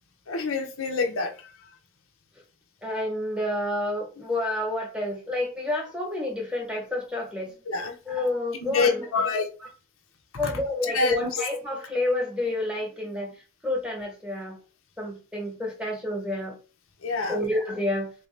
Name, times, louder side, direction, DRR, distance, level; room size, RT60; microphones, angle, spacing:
voice 1, 0.3-1.3 7.7-7.9 8.6-9.5 10.9-11.3 17.0-17.4, left 4 dB, 80° left, 4 dB, 0.7 m, -26 dB
voice 2, 2.8-7.5 8.1-9.0 10.4-13.3 13.6-14.6 15.0-16.6 17.3-18.1, left 1 dB, 5° right, 1 dB, 1.0 m, -29 dB
3.9 x 2.6 x 3.2 m, 0.35 s
head